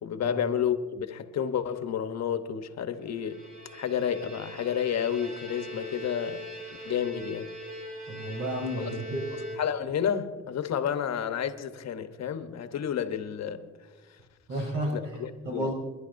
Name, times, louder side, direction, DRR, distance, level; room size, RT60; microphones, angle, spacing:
voice 1, 0.0-3.4 3.7-6.5 6.8-7.5 8.8-8.9 9.6-13.7 14.9-15.7, left 8 dB, 60° left, 1.0 m, -30 dB
Bowed string instrument, 3.1-10.0, equal, 25° right, 4.2 m, -42 dB
voice 2, 8.1-9.3 14.5-15.0 15.4-15.7, right 1 dB, 85° right, 4.3 m, -31 dB
29.0 x 11.5 x 2.6 m
cardioid pair, 90°, 30 cm